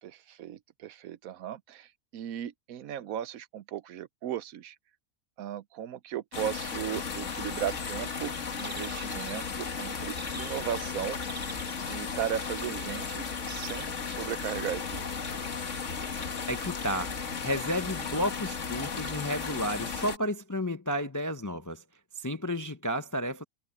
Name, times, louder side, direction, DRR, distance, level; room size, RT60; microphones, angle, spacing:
voice 1, 0.0-4.7 5.4-11.2 11.9-15.0, right 10 dB, 75° right, 1.1 m, -36 dB
sound 1, 6.3-20.2, left 5 dB, 55° left, 1.9 m, -35 dB
sound 2, 7.4-13.9, right 2 dB, 20° right, 1.6 m, -48 dB
voice 2, 16.5-17.1 17.4-21.8 22.2-23.4, equal, 20° left, 0.4 m, -32 dB
omnidirectional pair, 1.5 m